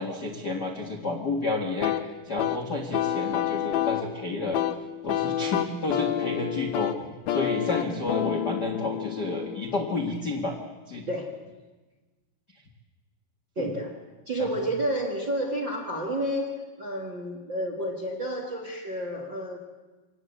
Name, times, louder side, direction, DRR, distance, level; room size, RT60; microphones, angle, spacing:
voice 1, 0.0-2.0 2.2-4.6 5.0-10.6 10.9-11.1 13.6-13.7 14.4-14.5, left 2 dB, 55° left, 2 dB, 1.1 m, -31 dB
sound 1, 1.8-10.4, left 10 dB, 70° left, 2.6 m, -29 dB
voice 2, 11.1-11.4 13.5-19.6, right 1 dB, 45° right, 0 dB, 1.5 m, -30 dB
25.0 x 18.5 x 8.1 m, 1.2 s
omnidirectional pair, 5.0 m